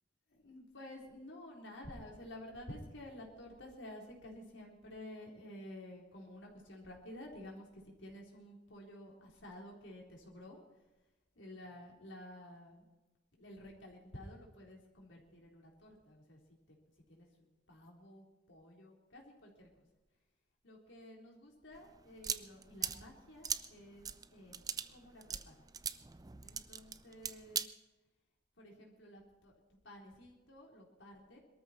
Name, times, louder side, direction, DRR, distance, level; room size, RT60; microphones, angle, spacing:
voice 1, 0.3-10.6 11.4-12.8 13.3-16.4 16.7-16.8 17.1-19.9 20.6-24.6 24.9-25.6 26.4-27.7 28.6-31.4, left 1 dB, 85° left, -1 dB, 3.9 m, -52 dB
sound 1, 21.7-27.7, right 7 dB, 20° right, 0.4 m, -41 dB
22.0 x 13.5 x 4.5 m, 1.1 s
head